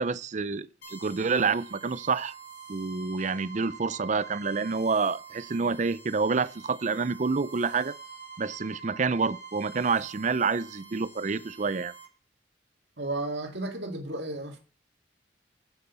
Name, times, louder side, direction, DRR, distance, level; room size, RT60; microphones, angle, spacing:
voice 1, 0.0-2.3 2.7-7.9 8.4-11.9, right 4 dB, 40° right, 0.5 m, -28 dB
sound 1, 0.8-12.1, right 5 dB, 65° left, 5.7 m, -46 dB
voice 2, 13.0-14.6, right 2 dB, 75° right, 1.9 m, -33 dB
8.1 x 8.1 x 6.8 m
head